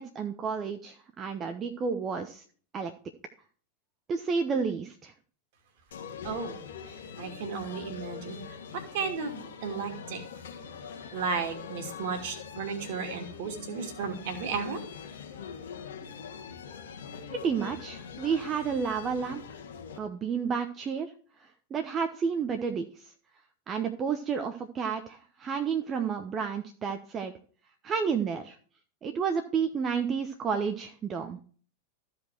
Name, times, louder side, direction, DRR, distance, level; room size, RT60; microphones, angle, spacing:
voice 1, 0.0-2.4 2.7-2.9 4.1-5.1 17.3-19.6 20.0-21.1 21.4-23.1 23.7-27.3 27.8-28.6 29.0-31.4, right 6 dB, 25° right, 6 dB, 1.0 m, -31 dB
sound 1, 5.9-20.0, left 6 dB, 60° left, 1.6 m, -43 dB
voice 2, 6.2-6.5 7.2-8.4 8.7-10.2 11.1-14.8, right 5 dB, 50° right, 6 dB, 2.3 m, -34 dB
14.0 x 5.2 x 4.6 m, 0.43 s
figure-of-eight pair, 90°, 0 cm